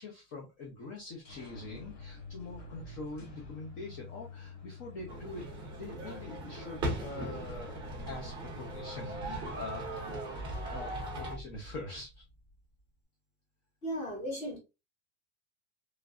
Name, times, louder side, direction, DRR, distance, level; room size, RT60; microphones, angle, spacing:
voice 1, 0.0-7.8 8.0-10.1 10.7-12.2, left 3 dB, 35° left, 0.7 m, -44 dB
sound 1, 1.0-12.6, left 1 dB, 60° left, 1.3 m, -47 dB
sound 2, 5.1-11.3, right 1 dB, 15° right, 0.6 m, -39 dB
voice 2, 13.8-14.6, equal, 20° left, 1.3 m, -36 dB
3.2 x 2.5 x 2.3 m
supercardioid pair, 180°, 36 cm